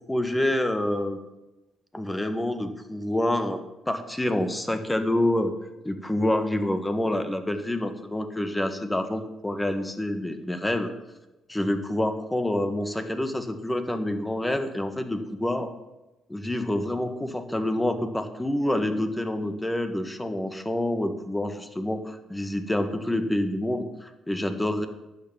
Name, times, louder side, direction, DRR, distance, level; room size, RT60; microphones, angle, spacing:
voice 1, 0.1-1.2 1.9-3.6 3.9-5.5 5.8-10.9 11.5-15.7 16.3-24.9, left 1 dB, 10° left, 7 dB, 1.5 m, -27 dB
11.5 x 6.7 x 9.2 m, 1.0 s
cardioid pair, 90°, 0 cm